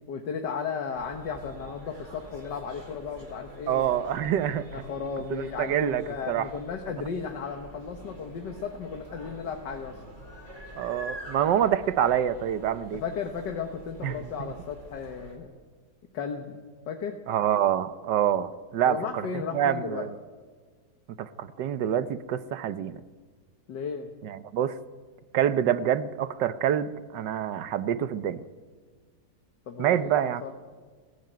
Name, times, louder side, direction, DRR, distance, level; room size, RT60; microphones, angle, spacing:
voice 1, 0.1-4.2 4.7-10.0 12.9-15.5 16.1-17.2 18.9-20.1 23.7-24.1 29.7-30.5, left 6 dB, 85° left, 4 dB, 2.0 m, -35 dB
sound 1, 0.9-15.4, right 1 dB, 40° right, 5.1 m, -46 dB
voice 2, 3.7-4.7 5.3-6.5 10.8-13.0 14.0-14.5 17.3-20.1 21.2-23.0 24.2-24.7 25.3-28.4 29.8-30.4, right 10 dB, 90° right, 13 dB, 1.5 m, -26 dB
21.0 x 15.5 x 9.2 m, 1.5 s
omnidirectional pair, 1.8 m